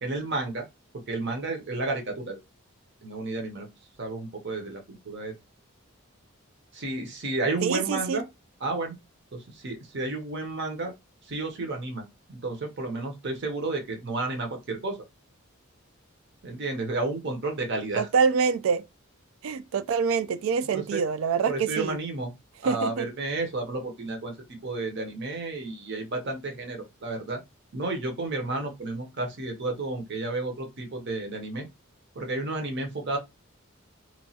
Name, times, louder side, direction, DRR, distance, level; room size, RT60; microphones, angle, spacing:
voice 1, 0.0-0.7 1.1-2.4 3.0-3.7 4.0-5.3 6.7-8.2 8.6-9.0 9.3-10.9 11.2-15.0 16.4-18.1 20.7-21.0 21.5-22.3 22.6-24.3 24.6-27.4 27.7-31.7 32.1-33.2, right 2 dB, 55° right, 0.7 m, -31 dB
voice 2, 7.6-8.2 18.0-18.8 19.4-22.0 22.7-23.1, right 6 dB, 75° right, 0.3 m, -25 dB
2.9 x 2.3 x 2.7 m
head